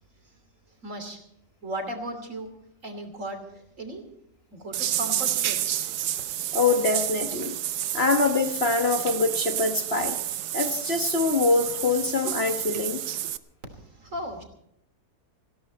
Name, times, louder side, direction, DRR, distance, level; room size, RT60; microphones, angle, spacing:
voice 1, 0.8-1.2 1.6-2.5 2.8-4.1 4.5-5.8 13.7-14.4, right 1 dB, 50° right, 5 dB, 3.3 m, -36 dB
sound 1, 4.7-13.4, right 12 dB, 80° right, 1.3 m, -30 dB
voice 2, 6.5-7.5 7.9-10.2 10.5-13.0, left 3 dB, 40° left, 5 dB, 1.4 m, -24 dB
18.5 x 16.5 x 4.2 m, 0.78 s
omnidirectional pair, 1.7 m